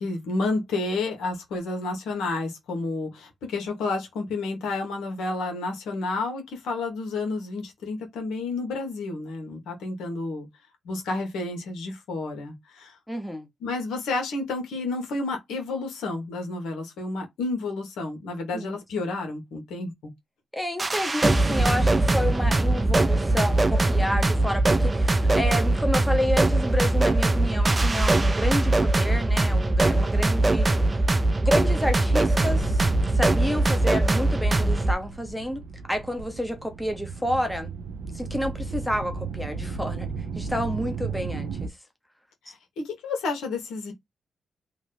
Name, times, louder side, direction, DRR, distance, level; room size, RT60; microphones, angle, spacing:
voice 1, 0.0-10.5 10.8-13.0 13.6-20.1 42.4-43.9, left 3 dB, 85° left, 1.3 m, -30 dB
voice 2, 13.1-13.5 18.5-18.7 20.5-30.9 31.4-32.8 33.1-35.6 35.9-37.7 38.1-40.1 40.4-41.7, left 1 dB, 5° left, 0.9 m, -30 dB
sound 1, 20.8-34.9, right 2 dB, 30° right, 0.5 m, -21 dB
sound 2, 32.3-41.7, right 4 dB, 80° right, 0.5 m, -34 dB
2.9 x 2.5 x 3.2 m
supercardioid pair, 55°, 0 cm